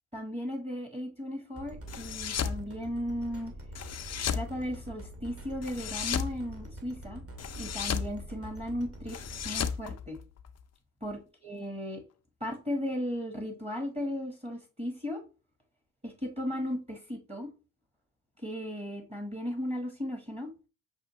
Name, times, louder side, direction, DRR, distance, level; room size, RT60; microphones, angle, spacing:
voice 1, 0.1-3.5 4.3-7.2 7.6-9.2 9.4-10.2 11.0-12.0 12.4-15.2 16.0-17.5 18.4-20.5, equal, 15° right, 3 dB, 1.3 m, -36 dB
sound 1, 1.5-9.7, right 1 dB, 30° right, 1.6 m, -45 dB
sound 2, 1.9-2.6 3.8-4.5 5.6-6.3 7.4-8.1 9.1-10.6, left 8 dB, 35° left, 0.5 m, -34 dB
6.1 x 2.4 x 3.0 m, 0.33 s
hypercardioid pair, 45°, 46 cm